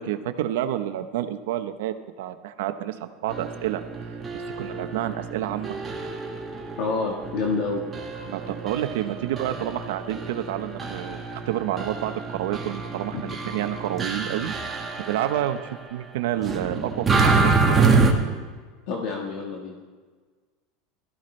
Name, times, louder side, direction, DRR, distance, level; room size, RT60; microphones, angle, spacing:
voice 1, 0.0-3.8 4.6-5.8 8.3-15.6 15.9-18.0, right 12 dB, 85° right, 9 dB, 0.8 m, -29 dB
sound 1, 3.3-15.8 16.4-18.1, right 4 dB, 20° right, 1.5 m, -27 dB
voice 2, 6.8-7.8 13.1-13.2 18.9-19.8, left 4 dB, 60° left, 0 dB, 1.5 m, -28 dB
16.0 x 14.0 x 3.2 m, 1.5 s
supercardioid pair, 140°, 0 cm